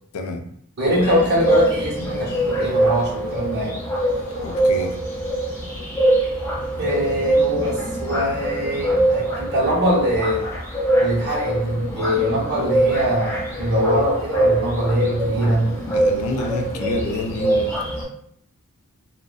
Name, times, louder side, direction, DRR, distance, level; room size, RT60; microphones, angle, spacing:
voice 1, 0.1-0.5 4.4-5.0 15.9-17.8, left 2 dB, 70° left, 4 dB, 0.4 m, -28 dB
sound 1, 0.8-18.0, right 1 dB, 10° left, 0.6 m, -23 dB
voice 2, 0.8-3.8 6.8-10.5 11.0-15.7, equal, 50° right, -5 dB, 0.8 m, -22 dB
2.6 x 2.0 x 2.3 m, 0.67 s
head